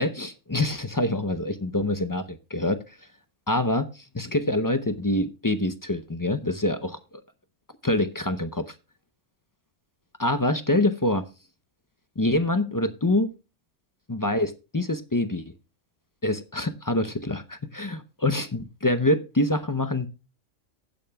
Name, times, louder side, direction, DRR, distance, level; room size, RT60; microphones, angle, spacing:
voice 1, 0.0-3.1 3.5-7.2 7.8-8.7 10.2-11.3 12.2-13.3 14.1-15.5 16.2-20.1, left 1 dB, 35° left, 0.3 m, -26 dB
15.5 x 9.0 x 2.2 m
omnidirectional pair, 1.3 m